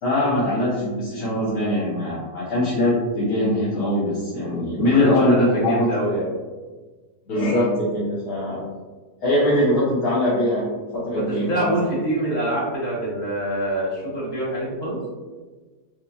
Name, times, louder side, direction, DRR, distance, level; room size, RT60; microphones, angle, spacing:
voice 1, 0.0-6.0 7.3-8.6 9.2-10.6 10.9-11.7, left 1 dB, 75° left, -8 dB, 1.5 m, -22 dB
voice 2, 5.0-6.3 11.1-15.0, right 1 dB, 30° left, -6 dB, 1.2 m, -25 dB
5.0 x 2.6 x 2.3 m, 1.3 s
omnidirectional pair, 1.7 m